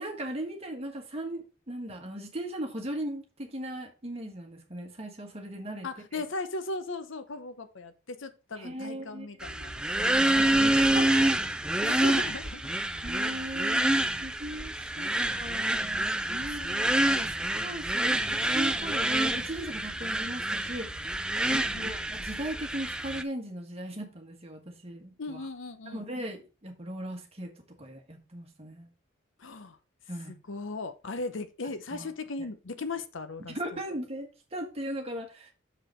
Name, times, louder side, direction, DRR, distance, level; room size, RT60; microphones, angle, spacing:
voice 1, 0.0-5.9 6.1-6.2 8.6-9.3 10.3-11.3 12.2-12.3 13.0-16.6 17.2-21.1 21.5-25.5 25.9-28.9 30.1-30.4 31.9-32.1 33.5-35.5, right 1 dB, 30° right, 1.5 m, -38 dB
voice 2, 5.8-10.8 11.8-12.7 15.0-15.3 16.6-17.0 21.5-22.0 25.2-26.1 29.4-29.8 30.5-33.8, left 3 dB, 65° left, 0.8 m, -38 dB
sound 1, 9.4-23.2, right 1 dB, 5° right, 0.3 m, -27 dB
6.6 x 5.0 x 4.4 m
head